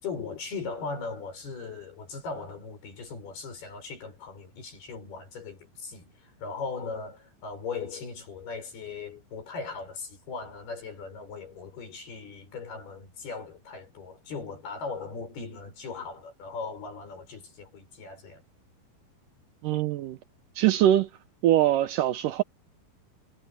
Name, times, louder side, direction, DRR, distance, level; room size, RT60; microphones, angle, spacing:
voice 1, 0.0-18.4, left 4 dB, 80° left, 9.1 m, -38 dB
voice 2, 19.6-20.2 20.6-21.1 21.4-22.4, right 12 dB, 75° right, 2.1 m, -22 dB
omnidirectional pair, 4.4 m